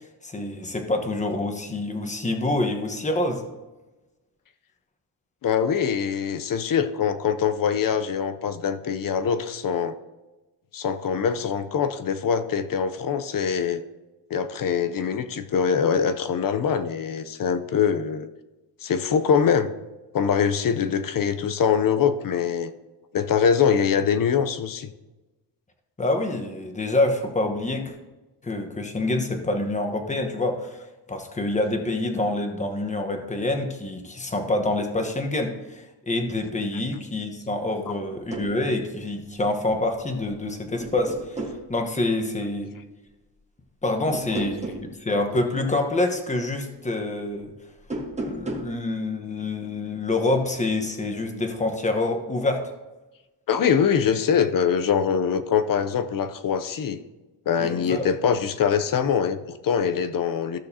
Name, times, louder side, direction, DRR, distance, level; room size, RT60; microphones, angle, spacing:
voice 1, 0.2-3.4 26.0-27.9 28.4-30.8 31.1-41.4 41.7-42.7 43.8-47.5 48.2-52.7 57.6-58.1, left 2 dB, 15° left, 4 dB, 1.1 m, -26 dB
voice 2, 5.4-10.0 10.7-13.8 14.3-18.3 18.8-19.7 20.1-22.7 23.1-24.9 53.5-57.0 57.5-60.6, left 7 dB, 55° left, 10 dB, 0.7 m, -23 dB
sound 1, 38.1-38.5 40.1-40.4 40.8-41.6 44.1-44.9 47.8-48.7, right 2 dB, 15° right, 1.3 m, -33 dB
15.0 x 6.3 x 2.8 m, 1.1 s
cardioid pair, 125°, 42 cm